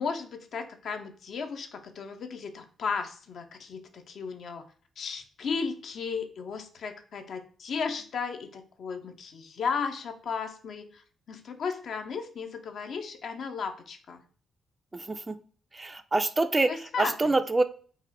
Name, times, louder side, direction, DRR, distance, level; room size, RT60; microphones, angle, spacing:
voice 1, 0.0-4.6 5.0-11.0 11.3-14.2 16.7-17.3, left 5 dB, 65° left, 6 dB, 0.4 m, -35 dB
voice 2, 14.9-15.4 15.7-17.6, right 2 dB, 25° right, 10 dB, 0.3 m, -26 dB
4.0 x 2.0 x 2.5 m, 0.42 s
hypercardioid pair, 45°, 0 cm